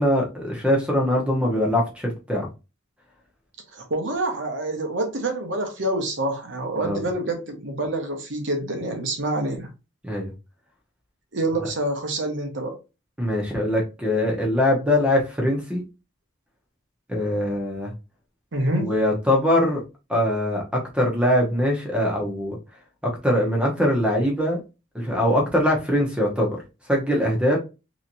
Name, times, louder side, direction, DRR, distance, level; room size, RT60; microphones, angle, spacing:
voice 1, 0.0-2.5 6.8-7.1 10.0-10.3 13.2-15.8 17.1-17.9 18.8-19.8 20.1-22.6 23.0-24.6 24.9-27.6, left 1 dB, 5° right, 0.8 m, -22 dB
voice 2, 3.7-9.7 11.3-12.8 18.5-18.9, right 1 dB, 60° right, 1.0 m, -27 dB
3.2 x 3.0 x 2.7 m
head